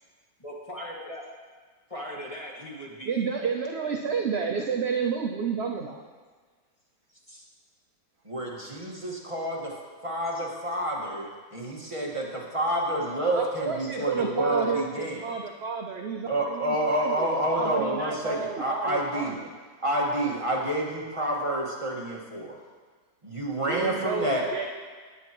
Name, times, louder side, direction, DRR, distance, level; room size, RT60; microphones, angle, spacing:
voice 1, 0.4-1.3 1.9-3.3 7.3-7.5, equal, 20° left, -4 dB, 1.7 m, -39 dB
voice 2, 3.1-6.0 13.3-19.5 23.6-24.7, right 6 dB, 60° right, 2 dB, 0.7 m, -31 dB
voice 3, 8.2-9.7 10.0-15.2 16.3-19.4 19.8-22.6 23.2-24.4, right 1 dB, 20° right, -3 dB, 1.6 m, -28 dB
19.0 x 8.9 x 3.0 m, 1.5 s
omnidirectional pair, 1.8 m